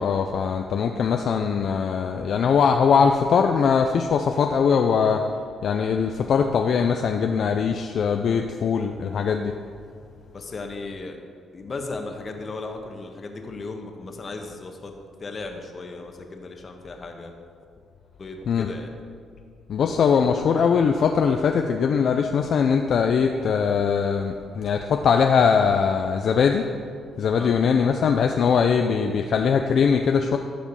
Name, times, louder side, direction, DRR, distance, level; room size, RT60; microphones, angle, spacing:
voice 1, 0.0-5.2 5.6-9.5 18.5-18.7 19.7-26.7 27.2-30.4, left 6 dB, 60° left, 4 dB, 0.5 m, -21 dB
voice 2, 10.3-11.2 11.5-14.9 15.2-17.3 18.2-19.0 27.4-27.5, left 3 dB, 40° left, 4 dB, 1.3 m, -36 dB
14.5 x 5.2 x 5.4 m, 2.2 s
cardioid pair, 90°, 0 cm